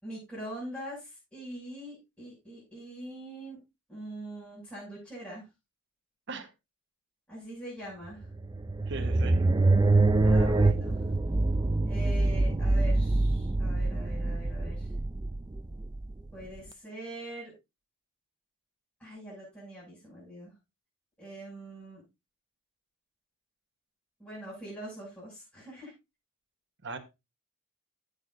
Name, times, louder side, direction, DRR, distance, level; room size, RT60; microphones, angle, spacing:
voice 1, 0.0-3.6 3.9-5.4 7.3-8.2 10.2-11.1 11.8-14.9 16.3-17.5 19.0-20.5 21.2-22.0 24.2-25.9, right 1 dB, 5° left, 6.5 m, -43 dB
sound 1, 8.2-16.6, right 2 dB, 20° right, 0.4 m, -25 dB
voice 2, 8.9-9.5 26.8-27.0, right 3 dB, 55° right, 1.2 m, -39 dB
15.5 x 6.7 x 2.6 m
head